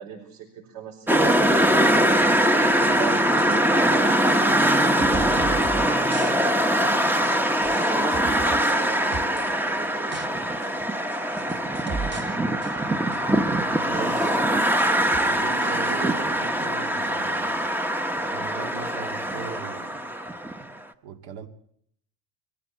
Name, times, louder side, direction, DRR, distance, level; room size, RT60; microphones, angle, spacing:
voice 1, 0.0-1.8 2.6-10.8 13.9-14.5, right 7 dB, 85° right, 5.1 m, -40 dB
sound 1, 1.1-20.6, right 1 dB, 5° right, 0.8 m, -22 dB
sound 2, 3.4-3.6 3.9-4.0 4.6-4.7 5.0-5.9 6.1-6.3 6.6-6.7 7.1-7.2 7.6-9.5 9.9-10.3 10.6-10.7 11.1-12.4 12.6-13.3 13.9-14.7 15.1-16.0, right 4 dB, 30° right, 1.3 m, -37 dB
voice 2, 11.8-12.7 13.7-14.3 15.2-17.6 18.3-20.2 21.0-21.5, right 6 dB, 65° right, 2.2 m, -39 dB
22.5 x 15.0 x 7.9 m
cardioid pair, 130°, 38 cm